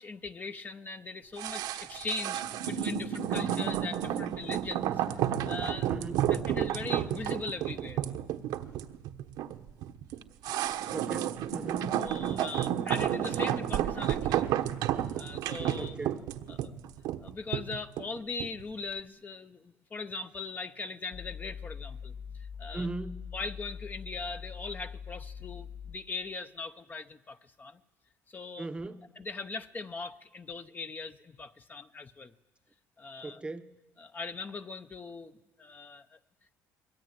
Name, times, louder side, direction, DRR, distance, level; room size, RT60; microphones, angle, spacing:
voice 1, 0.0-4.9 5.2-5.9 6.3-8.0 11.9-14.5 15.2-16.0 16.5-16.7 17.2-22.1 22.4-22.9 23.3-27.8 28.3-28.7 29.2-32.3 33.0-33.4 34.0-36.2, left 3 dB, 25° left, 9 dB, 0.8 m, -40 dB
sound 1, 1.4-18.6 18.9-19.0, right 11 dB, 75° right, 1.2 m, -31 dB
voice 2, 5.9-6.3 10.9-12.0 15.8-16.2 22.7-23.2 28.6-29.1 33.2-33.8, right 2 dB, 15° right, 10 dB, 0.9 m, -39 dB
sound 2, 21.1-25.9, left 7 dB, 70° left, 2.3 m, -43 dB
24.0 x 21.5 x 9.4 m, 1.3 s
cardioid pair, 115°, 7 cm